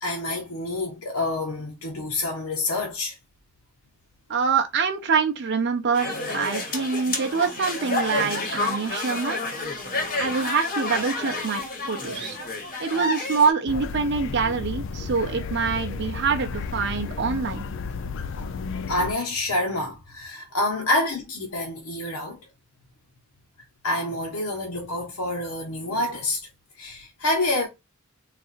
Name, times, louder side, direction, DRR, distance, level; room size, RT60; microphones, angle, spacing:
voice 1, 0.0-3.2 18.9-22.4 23.8-26.4 26.8-27.7, left 2 dB, 85° left, 0.9 m, -27 dB
voice 2, 4.3-9.4 10.2-12.4 12.8-17.7, right 5 dB, 55° right, 0.6 m, -25 dB
sound 1, 5.9-13.5, left 2 dB, 40° left, 1.1 m, -29 dB
sound 2, 13.7-19.1, left 4 dB, 60° left, 0.4 m, -33 dB
4.0 x 2.5 x 2.4 m
head